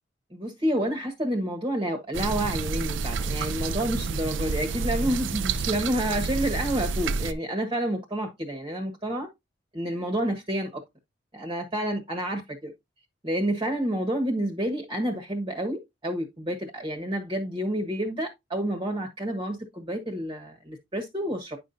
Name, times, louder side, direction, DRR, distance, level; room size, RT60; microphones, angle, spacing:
voice 1, 0.3-9.3 9.7-10.8 11.3-12.7 13.2-21.6, right 1 dB, 25° right, 1.4 m, -29 dB
sound 1, 2.1-7.3, right 4 dB, 75° right, 0.6 m, -29 dB
9.7 x 5.5 x 2.7 m
head